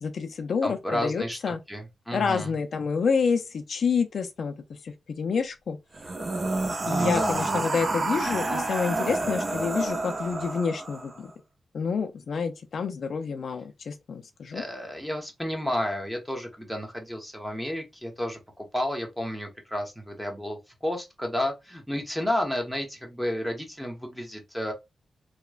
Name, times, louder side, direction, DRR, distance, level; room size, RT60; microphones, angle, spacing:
voice 1, 0.0-1.6 2.1-5.8 6.9-11.3 11.7-14.6, left 5 dB, 70° left, 0.3 m, -28 dB
voice 2, 0.6-2.5 6.9-7.6 14.5-24.7, left 1 dB, ahead, 0.9 m, -32 dB
sound 1, 5.9-11.2, right 2 dB, 40° right, 0.6 m, -29 dB
3.0 x 2.1 x 2.3 m
cardioid pair, 70°, 0 cm